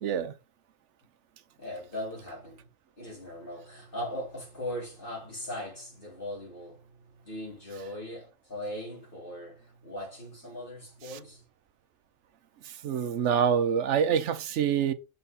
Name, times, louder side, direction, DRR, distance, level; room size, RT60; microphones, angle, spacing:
voice 1, 0.0-0.3 12.8-14.9, right 8 dB, 65° right, 0.9 m, -26 dB
voice 2, 1.6-2.6 3.0-6.8 7.2-11.4, left 1 dB, 40° left, 3.7 m, -39 dB
6.8 x 4.0 x 4.0 m
omnidirectional pair, 1.4 m